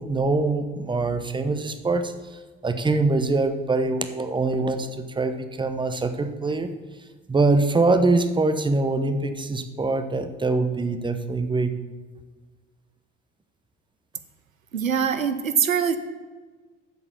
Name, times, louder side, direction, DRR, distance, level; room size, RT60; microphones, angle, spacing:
voice 1, 0.0-6.7 7.3-11.7, right 3 dB, 10° right, 9 dB, 0.9 m, -24 dB
voice 2, 14.7-16.0, right 7 dB, 85° right, 10 dB, 0.6 m, -23 dB
8.0 x 7.3 x 7.0 m, 1.4 s
figure-of-eight pair, 55°, 39 cm